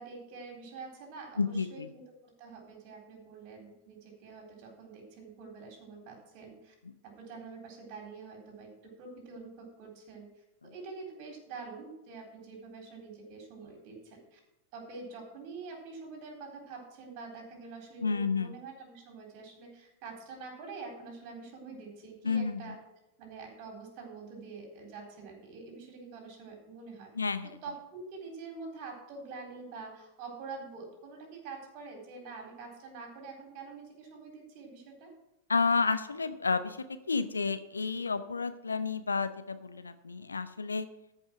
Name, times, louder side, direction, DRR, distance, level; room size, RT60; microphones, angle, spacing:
voice 1, 0.0-6.7 7.0-14.4 14.7-22.8 23.2-27.1 27.6-35.1, right 4 dB, 45° right, 2 dB, 3.8 m, -46 dB
voice 2, 1.4-1.9 18.0-18.5 22.2-22.7 27.2-27.6 35.5-36.8 37.1-40.9, left 4 dB, 75° left, 11 dB, 0.7 m, -30 dB
14.0 x 5.5 x 6.1 m, 0.91 s
figure-of-eight pair, 90°, 0 cm